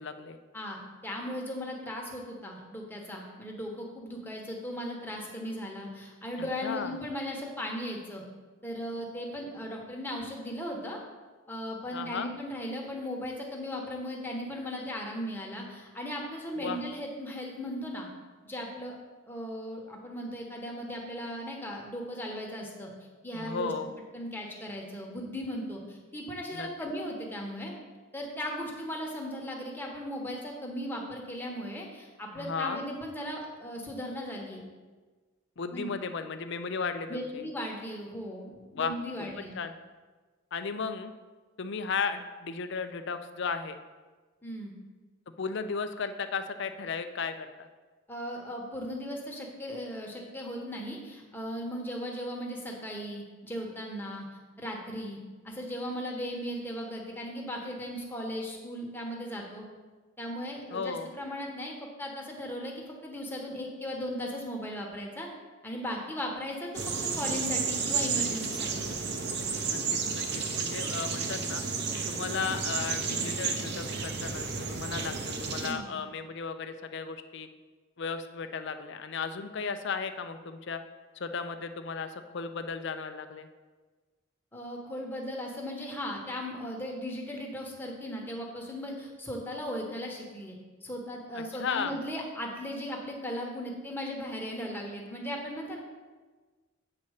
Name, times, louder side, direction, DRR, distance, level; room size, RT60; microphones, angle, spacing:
voice 1, 0.0-0.4 6.4-6.9 11.9-12.3 16.6-16.8 23.3-23.9 26.5-26.7 32.4-32.8 35.6-37.4 38.7-38.9 39.5-39.7 40.5-41.1 41.6-43.8 45.4-47.7 60.7-61.1 69.7-70.2 70.5-71.6 72.1-77.5 78.0-80.8 81.2-83.5 91.3-91.9, left 5 dB, 55° left, 9 dB, 0.5 m, -35 dB
voice 2, 0.5-8.2 8.6-11.0 11.5-18.1 18.4-19.0 19.3-22.9 23.2-23.7 24.1-27.7 28.1-34.6 35.7-35.9 37.1-39.6 44.4-44.7 48.1-54.3 54.6-55.2 55.4-59.7 60.2-65.3 65.6-68.8 75.6-75.9 84.5-95.8, equal, 10° left, -1 dB, 1.1 m, -37 dB
sound 1, 66.7-75.7, right 5 dB, 50° right, 0.8 m, -32 dB
8.6 x 4.2 x 6.4 m, 1.3 s
head